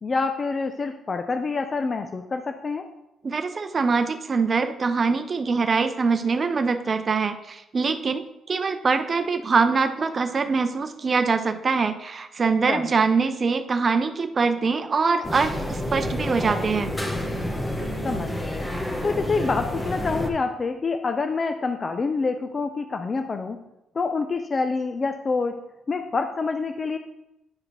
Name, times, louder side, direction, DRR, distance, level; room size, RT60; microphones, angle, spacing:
voice 1, 0.0-2.8 12.7-12.9 18.0-18.7 19.0-23.6 23.9-25.6 25.9-27.0, left 4 dB, 35° left, 7 dB, 0.5 m, -27 dB
voice 2, 3.2-16.9, right 4 dB, 40° right, 8 dB, 0.6 m, -23 dB
sound 1, 15.2-20.3, left 1 dB, 15° left, 1.2 m, -29 dB
10.0 x 4.8 x 3.2 m, 0.89 s
cardioid pair, 90°, 0 cm